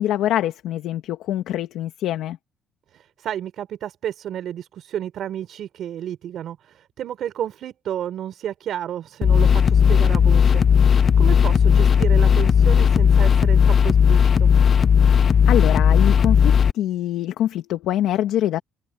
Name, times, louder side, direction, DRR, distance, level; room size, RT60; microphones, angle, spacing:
voice 1, 0.0-2.4 15.5-18.6, left 12 dB, 85° left, 1.8 m, -24 dB
voice 2, 2.9-10.6 10.9-14.5, right 10 dB, 65° right, 4.2 m, -31 dB
sound 1, 9.2-16.7, left 7 dB, 40° left, 0.4 m, -16 dB
cardioid pair, 125°, 0 cm